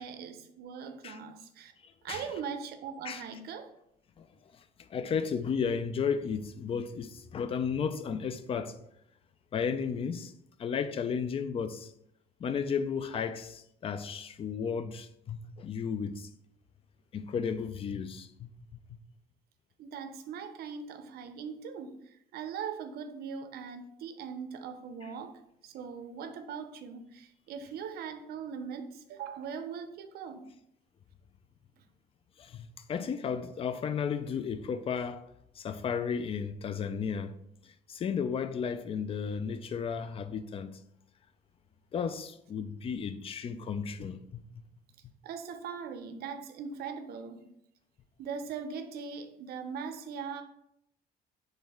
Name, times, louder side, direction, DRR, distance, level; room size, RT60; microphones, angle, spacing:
voice 1, 0.0-1.7 2.0-3.7 19.8-30.5 45.2-47.5 48.2-50.4, right 6 dB, 65° right, 0.6 m, -40 dB
voice 2, 1.8-2.2 3.0-3.2 4.2-4.3 4.9-8.8 9.5-10.3 10.6-11.9 12.4-16.3 17.1-18.5 32.4-35.3 35.6-37.3 37.6-40.8 41.9-44.2, left 6 dB, 35° left, 0.4 m, -34 dB
4.3 x 3.4 x 3.5 m
cardioid pair, 110°, 17 cm